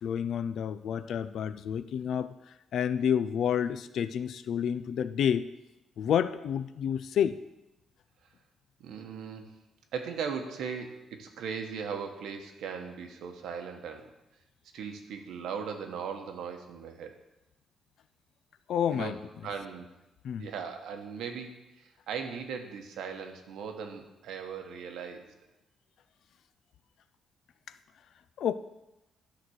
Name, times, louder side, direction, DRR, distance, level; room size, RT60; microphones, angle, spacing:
voice 1, 0.0-2.3 2.7-5.5 6.0-7.4 18.7-19.2 20.2-20.4 28.4-28.5, left 8 dB, 60° left, 13 dB, 0.4 m, -29 dB
voice 2, 8.8-9.5 9.9-14.1 14.7-17.2 18.9-19.2 19.4-19.9 20.4-25.3, right 6 dB, 85° right, 5 dB, 1.1 m, -38 dB
11.5 x 4.0 x 6.3 m, 0.95 s
cardioid pair, 160°, 0 cm